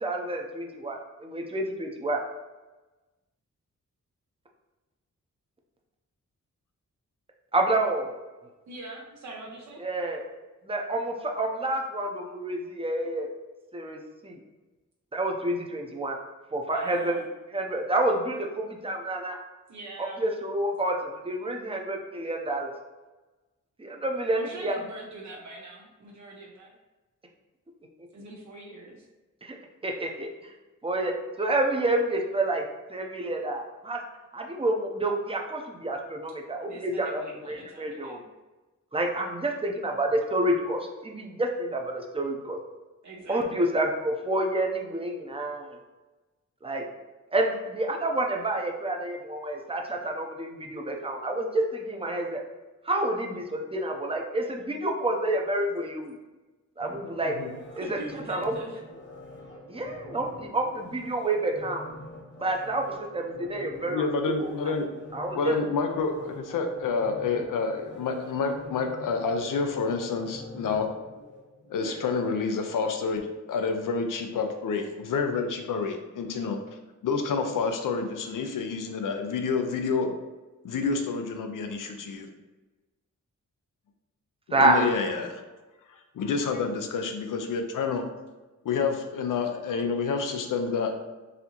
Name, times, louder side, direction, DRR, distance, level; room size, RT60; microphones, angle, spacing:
voice 1, 0.0-2.2 7.5-8.1 9.8-10.2 10.6-13.3 13.7-14.4 15.1-16.2 16.5-17.2 17.5-19.4 20.0-22.7 23.8-24.8 29.4-29.6 29.8-30.3 30.8-32.6 32.9-34.0 34.3-38.2 38.9-42.6 43.3-45.7 46.6-46.8 47.3-52.4 52.8-56.1 56.8-57.4 57.8-58.0 58.3-58.5 59.7-61.9 62.4-64.1 64.4-64.5 65.1-65.6 71.8-71.9 84.5-84.9, right 1 dB, 20° right, 1 dB, 0.6 m, -28 dB
voice 2, 8.7-9.8 16.7-17.2 19.7-20.2 24.3-26.7 28.1-29.0 36.6-38.2 43.0-43.7 57.8-58.8, right 2 dB, 65° right, -1 dB, 0.6 m, -42 dB
sound 1, 56.8-71.8 72.3-72.4, left 2 dB, 35° left, 0.9 m, -45 dB
voice 3, 63.9-64.9 65.3-70.9 71.7-76.6 77.0-80.1 80.6-82.3 84.6-85.4 85.9-88.1 88.6-91.0, left 4 dB, 90° left, 5 dB, 0.6 m, -28 dB
4.1 x 2.7 x 2.9 m, 1.2 s
wide cardioid pair, 95°, 31 cm